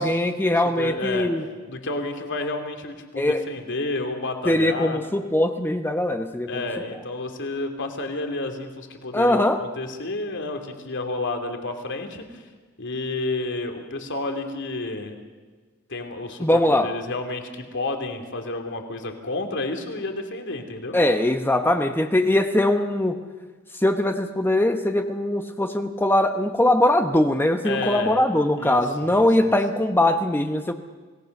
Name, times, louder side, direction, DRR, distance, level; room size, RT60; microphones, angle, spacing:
voice 1, 0.0-1.4 3.2-3.4 4.5-6.6 9.1-9.6 16.4-16.9 20.9-23.2 23.7-30.7, left 1 dB, 10° left, 6 dB, 1.0 m, -21 dB
voice 2, 0.8-1.3 1.7-5.0 6.5-12.4 12.8-15.2 15.9-21.0 27.6-28.2 28.6-29.3, left 2 dB, 60° left, 5 dB, 2.8 m, -30 dB
28.0 x 19.0 x 6.6 m, 1.4 s
head